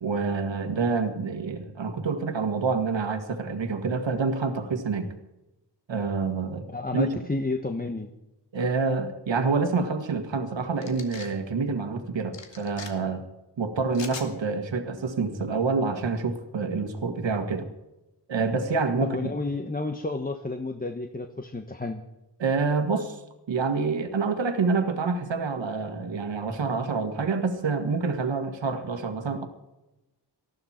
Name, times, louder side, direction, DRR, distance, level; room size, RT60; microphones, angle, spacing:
voice 1, 0.0-5.1 5.9-6.6 6.9-7.1 8.5-13.2 13.6-17.7 18.3-19.3 22.4-23.2 23.5-29.5, right 4 dB, 90° right, 7 dB, 1.9 m, -27 dB
voice 2, 6.7-8.1 19.0-22.0, left 2 dB, 20° left, 5 dB, 1.1 m, -31 dB
sound 1, 10.8-11.3 12.3-12.9 13.9-14.3, left 5 dB, 80° left, 2.2 m, -40 dB
19.5 x 14.0 x 4.4 m, 0.95 s
wide cardioid pair, 105°, 43 cm